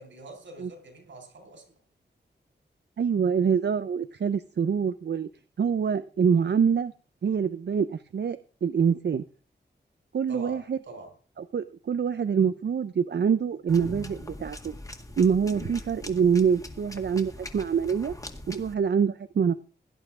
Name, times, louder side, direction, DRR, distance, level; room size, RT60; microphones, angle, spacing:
voice 1, 0.0-1.7 10.3-11.1, right 2 dB, 85° right, 5.1 m, -44 dB
voice 2, 3.0-5.3 5.6-6.9 7.2-9.2 10.1-10.8 11.5-14.7 15.2-18.1 18.5-19.5, right 6 dB, 65° right, 0.7 m, -25 dB
sound 1, 13.7-18.7, left 1 dB, 20° left, 2.0 m, -42 dB
17.5 x 11.5 x 3.7 m
wide cardioid pair, 95°, 19 cm